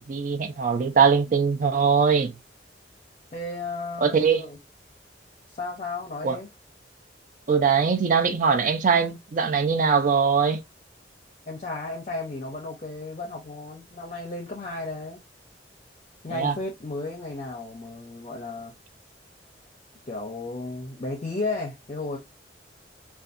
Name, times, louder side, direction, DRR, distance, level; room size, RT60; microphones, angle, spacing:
voice 1, 0.1-2.3 4.0-4.4 6.2-6.4 7.5-10.6 16.3-16.5, right 6 dB, 45° right, 0.4 m, -21 dB
voice 2, 3.3-4.6 5.5-6.5 11.5-15.2 16.2-18.7 20.1-22.2, left 2 dB, 35° left, 0.5 m, -34 dB
2.6 x 2.3 x 2.4 m
head